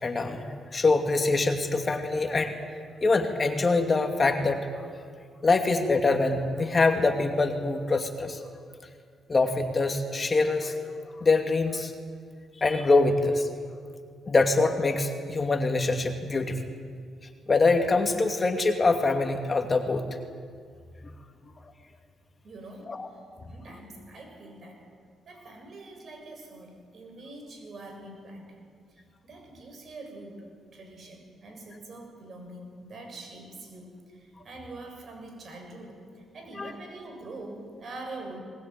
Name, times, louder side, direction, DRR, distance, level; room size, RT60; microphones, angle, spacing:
voice 1, 0.0-2.5 3.0-4.6 5.4-8.4 9.3-10.8 11.2-11.9 12.6-13.5 14.3-16.6 17.5-20.0 21.0-21.1 22.9-23.1 36.6-36.7, left 3 dB, 35° left, 5 dB, 2.5 m, -24 dB
voice 2, 22.4-23.0 23.4-24.9 25.3-28.6 28.9-38.4, right 2 dB, 55° right, 3 dB, 7.3 m, -44 dB
21.0 x 20.5 x 9.4 m, 2.1 s
supercardioid pair, 65°, 0 cm